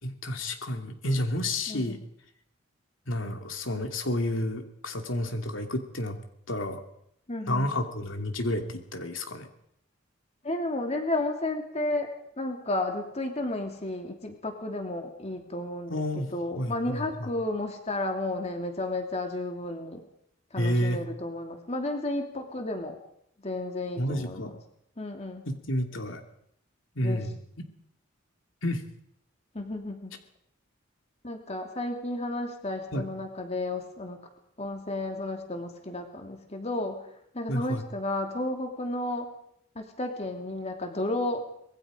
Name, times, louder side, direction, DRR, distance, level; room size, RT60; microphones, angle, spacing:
voice 1, 0.0-2.0 3.1-6.2 6.5-6.8 7.5-9.5 15.9-17.3 20.6-21.0 24.0-24.5 25.5-26.2 27.0-27.4 28.6-28.8 32.9-33.1 37.5-37.8, left 1 dB, 70° left, 4 dB, 2.8 m, -30 dB
voice 2, 1.7-2.0 7.3-7.7 10.4-12.1 12.4-20.0 20.5-23.0 23.4-24.5 25.0-25.4 27.0-27.3 29.5-30.2 31.2-34.3 34.6-39.3 39.7-41.5, left 2 dB, 35° left, 4 dB, 2.8 m, -32 dB
25.5 x 21.5 x 5.1 m, 0.72 s
head